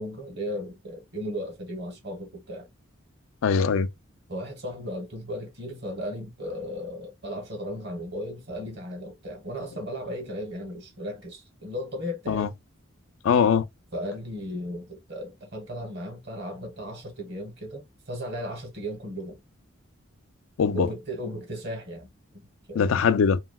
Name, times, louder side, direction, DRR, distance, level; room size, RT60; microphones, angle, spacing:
voice 1, 0.0-2.7 4.3-12.5 13.9-19.4 20.7-22.1 22.7-22.8, equal, 55° right, 1.1 m, -35 dB
voice 2, 3.4-3.9 12.3-12.5 13.2-13.6 20.6-20.9 22.8-23.4, left 6 dB, 75° left, 0.4 m, -21 dB
3.0 x 2.7 x 2.3 m
head